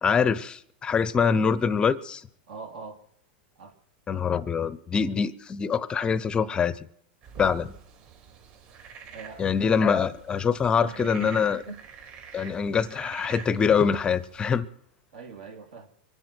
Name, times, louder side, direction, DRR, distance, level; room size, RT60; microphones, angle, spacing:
voice 1, 0.0-2.2 4.1-6.7 7.4-7.7 9.4-11.6 12.3-14.7, left 6 dB, 15° left, 0.6 m, -24 dB
voice 2, 2.5-3.0 3.6-3.8 9.1-9.4 10.8-11.8 15.1-15.9, right 6 dB, 70° right, 2.9 m, -41 dB
sound 1, 7.2-14.6, right 6 dB, 45° right, 4.3 m, -47 dB
24.0 x 10.5 x 4.5 m
supercardioid pair, 145°, 5 cm